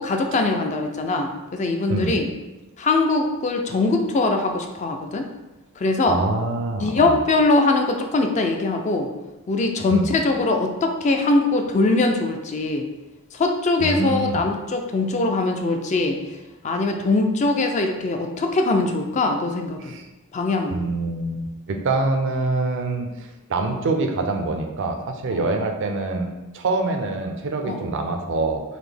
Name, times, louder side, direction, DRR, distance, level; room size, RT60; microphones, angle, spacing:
voice 1, 0.0-2.3 2.8-5.3 5.8-6.2 6.8-9.1 9.5-12.9 13.3-16.2 16.6-20.0 20.3-20.8 25.3-25.4 27.6-27.8, left 2 dB, 30° left, 4 dB, 0.3 m, -22 dB
voice 2, 6.1-7.2 9.9-10.1 13.8-14.4 19.9-20.0 20.7-28.6, right 3 dB, 55° right, 5 dB, 0.4 m, -25 dB
4.1 x 2.6 x 3.3 m, 1.1 s
head